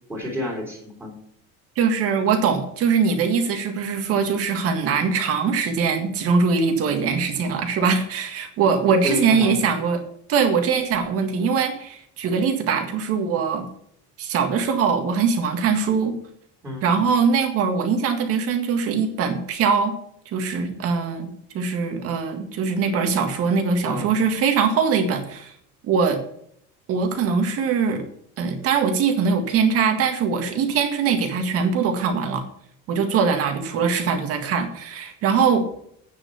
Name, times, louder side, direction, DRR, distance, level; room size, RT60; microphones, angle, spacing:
voice 1, 0.1-1.1 9.0-9.6 16.6-17.0 23.8-24.1, left 1 dB, 5° right, -5 dB, 3.3 m, -29 dB
voice 2, 1.8-10.0 10.3-13.6 14.2-16.2 16.8-19.9 20.3-25.5 25.8-26.2 26.9-28.0 28.4-32.5 32.9-35.7, right 5 dB, 45° right, 5 dB, 1.8 m, -22 dB
9.1 x 6.6 x 6.9 m, 0.67 s
cardioid pair, 175°, 32 cm